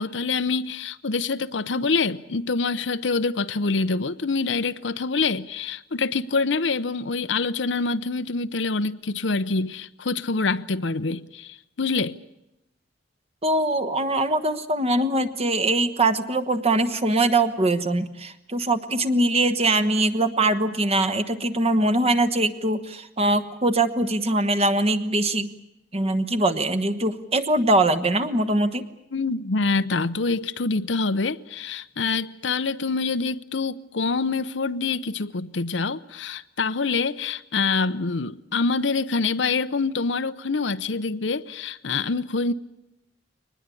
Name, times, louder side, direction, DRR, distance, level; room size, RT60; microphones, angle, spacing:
voice 1, 0.0-12.1 29.1-42.5, left 4 dB, 70° left, 0.8 m, -26 dB
voice 2, 13.4-25.5 25.9-28.8, right 2 dB, 35° right, 1.3 m, -22 dB
23.0 x 20.0 x 8.5 m
head